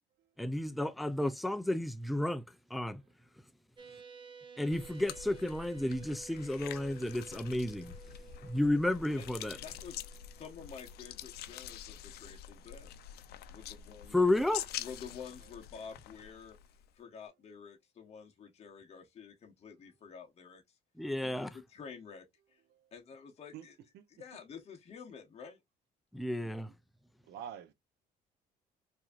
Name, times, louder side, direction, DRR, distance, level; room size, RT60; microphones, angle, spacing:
voice 1, 0.4-2.4 2.7-2.9 4.6-7.9 8.4-9.6 14.1-14.6 21.0-21.5 26.1-26.7, left 1 dB, ahead, 0.3 m, -32 dB
sound 1, 3.8-11.8, right 6 dB, 30° right, 0.8 m, -55 dB
voice 2, 3.8-4.2 4.7-4.9 6.9-7.1 8.2-8.6 15.4-15.5 21.4-21.5 22.7-22.9 23.5-23.7 23.9-24.1 26.4-26.8 27.2-27.7, right 9 dB, 80° right, 0.7 m, -51 dB
sound 2, 4.7-16.9, left 11 dB, 70° left, 0.5 m, -46 dB
voice 3, 9.5-10.0 10.3-13.0 13.5-14.4 14.8-16.6 16.9-20.8 21.2-22.6 22.9-23.7 24.2-25.6, left 6 dB, 40° left, 1.0 m, -49 dB
4.6 x 2.7 x 2.5 m
cardioid pair, 110°, 17 cm